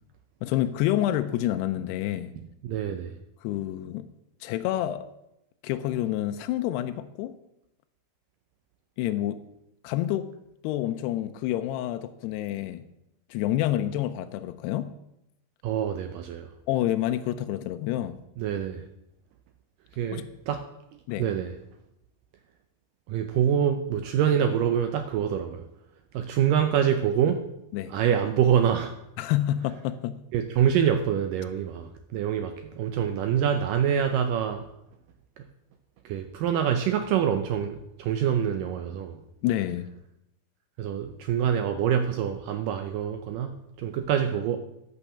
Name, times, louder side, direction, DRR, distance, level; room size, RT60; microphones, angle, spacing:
voice 1, 0.4-2.3 3.4-4.1 4.4-5.1 5.6-7.4 9.0-9.4 9.8-10.3 10.6-12.9 13.3-14.9 16.7-18.2 20.1-20.3 21.1-21.3 27.7-27.9 29.2-30.2 39.4-39.9, left 13 dB, 85° left, 9 dB, 2.7 m, -28 dB
voice 2, 2.6-3.1 15.6-16.5 18.4-18.9 20.0-20.7 21.2-21.5 23.1-25.6 26.1-27.4 27.9-28.9 30.3-34.7 36.1-39.2 40.8-44.6, right 9 dB, 85° right, 8 dB, 1.9 m, -25 dB
11.0 x 8.5 x 7.1 m, 0.85 s
omnidirectional pair, 4.7 m